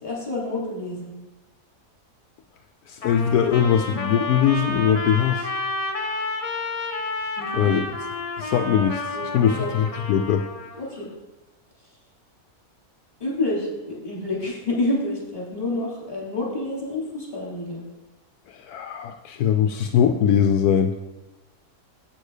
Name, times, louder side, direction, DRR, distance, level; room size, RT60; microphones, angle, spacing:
voice 1, 0.0-1.1 7.4-7.7 9.1-9.8 10.8-11.1 13.2-17.8, left 2 dB, 20° left, -7 dB, 3.6 m, -28 dB
voice 2, 2.9-5.5 7.5-7.9 8.4-10.4 18.5-20.9, left 8 dB, 80° left, 5 dB, 1.1 m, -21 dB
Trumpet, 3.0-10.8, left 2 dB, 35° left, 0.6 m, -30 dB
8.4 x 6.5 x 4.9 m, 1.1 s
omnidirectional pair, 1.6 m